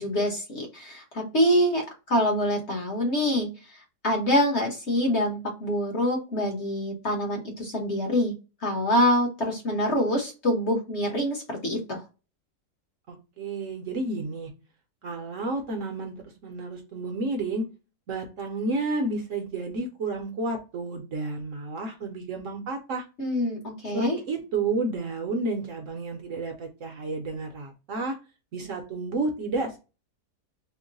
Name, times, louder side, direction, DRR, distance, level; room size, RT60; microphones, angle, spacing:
voice 1, 0.0-3.5 4.0-8.3 8.6-12.0 23.2-24.2, equal, 50° left, 0 dB, 1.1 m, -25 dB
voice 2, 13.1-14.5 15.0-17.7 18.1-23.1 23.9-28.2 28.5-29.8, right 3 dB, 60° right, 3 dB, 0.9 m, -31 dB
3.0 x 2.1 x 3.8 m, 0.30 s
omnidirectional pair, 1.8 m